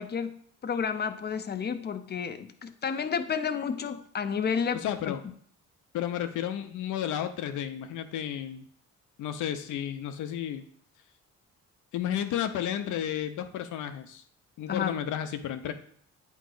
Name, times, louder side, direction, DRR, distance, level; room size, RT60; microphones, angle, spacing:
voice 1, 0.0-4.8 14.7-15.0, left 6 dB, 35° left, 9 dB, 0.6 m, -31 dB
voice 2, 4.7-5.2 5.9-8.6 9.2-10.6 11.9-14.2 14.6-15.7, left 10 dB, 80° left, 8 dB, 0.7 m, -32 dB
8.3 x 3.1 x 3.8 m, 0.62 s
cardioid pair, 90°, 30 cm